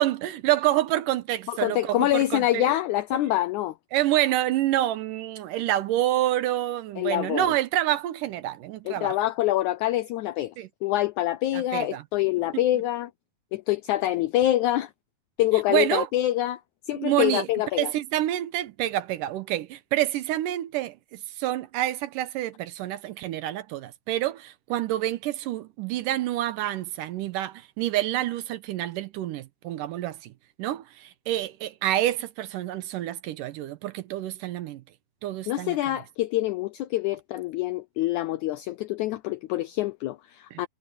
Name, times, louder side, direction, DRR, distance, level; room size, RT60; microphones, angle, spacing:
voice 1, 0.0-2.8 3.9-9.1 10.6-10.7 11.5-12.0 12.5-12.6 15.7-16.1 16.9-17.5 17.8-30.3 30.6-34.8 35.2-35.8 40.5-40.6, right 14 dB, 75° right, 2.3 m, -27 dB
voice 2, 1.5-3.7 7.0-7.5 8.9-10.5 10.8-13.1 13.5-14.9 15.4-16.6 16.9-17.9 35.5-40.7, left 14 dB, 85° left, 1.7 m, -25 dB
omnidirectional pair, 4.1 m